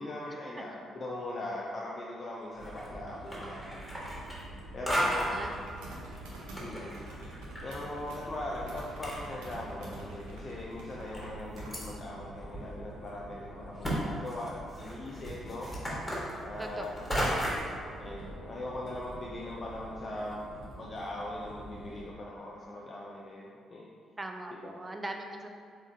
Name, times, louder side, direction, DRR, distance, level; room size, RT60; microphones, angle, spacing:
voice 1, 0.0-4.0 4.7-5.4 6.6-7.1 7.6-15.7 16.4-17.1 18.0-20.4 20.8-23.9 24.6-24.8, left 1 dB, 40° left, -4 dB, 0.5 m, -40 dB
Breaking large ice, 2.5-2.9 3.2-4.6 4.9-5.4 6.2-7.8 8.0-8.1 8.7-8.8 9.0-9.8 10.4-10.5 11.1-11.9 12.5-12.6 13.0-13.1 13.8-14.0 14.3-17.7, equal, 15° left, 1.5 m, -34 dB
sound 1, 2.6-22.1, right 1 dB, 70° right, 0.7 m, -46 dB
voice 2, 5.0-5.5 16.6-17.5 24.2-25.5, right 1 dB, 25° right, 4 dB, 0.5 m, -41 dB
5.2 x 3.6 x 2.7 m, 2.3 s
figure-of-eight pair, 40°, 0 cm